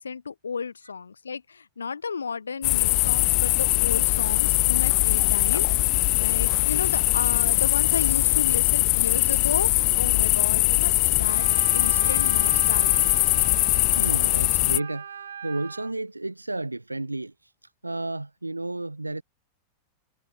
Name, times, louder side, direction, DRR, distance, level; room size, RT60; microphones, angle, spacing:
voice 1, 0.0-11.5 11.7-13.2, left 5 dB, 75° left, 4.9 m, -33 dB
sound 1, 2.6-14.8, left 38 dB, 45° left, 2.6 m, -21 dB
Wind instrument woodwind instrument, 11.3-15.9, right 8 dB, 65° right, 6.4 m, -38 dB
voice 2, 14.0-19.2, right 2 dB, 85° right, 3.2 m, -32 dB
figure-of-eight pair, 90°, 0 cm